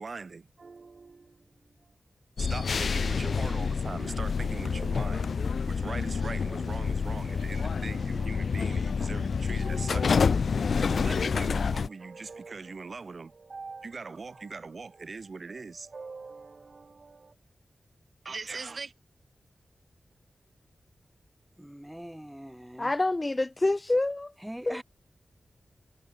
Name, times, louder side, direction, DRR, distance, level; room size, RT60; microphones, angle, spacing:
voice 1, 0.0-1.9 2.4-17.3 18.2-18.9, right 4 dB, 55° right, 5.4 m, -41 dB
sound 1, 2.4-11.9, left 5 dB, 80° left, 0.4 m, -28 dB
voice 2, 21.6-22.9 24.4-24.8, equal, 5° right, 5.6 m, -42 dB
voice 3, 22.8-24.3 24.7-24.8, left 2 dB, 25° left, 0.6 m, -27 dB
wide cardioid pair, 120°, 0 cm